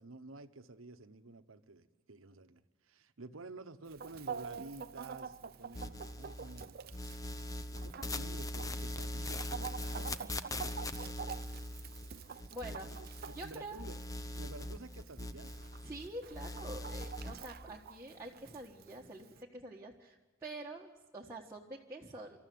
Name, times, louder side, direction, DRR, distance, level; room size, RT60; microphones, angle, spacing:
voice 1, 0.0-6.8 7.7-10.2 10.9-11.8 12.7-14.0 14.3-15.6, right 3 dB, 85° right, 11 dB, 1.1 m, -51 dB
Chicken rooster, 3.9-19.4, right 6 dB, 50° right, 0.6 m, -48 dB
sound 1, 5.7-6.6 6.9-13.5 13.8-16.1 16.3-17.3, left 1 dB, 15° left, 0.8 m, -41 dB
voice 2, 12.5-12.9 13.3-13.8 15.8-22.5, right 1 dB, 15° right, -4 dB, 1.5 m, -46 dB
25.5 x 14.0 x 9.4 m, 1.3 s
head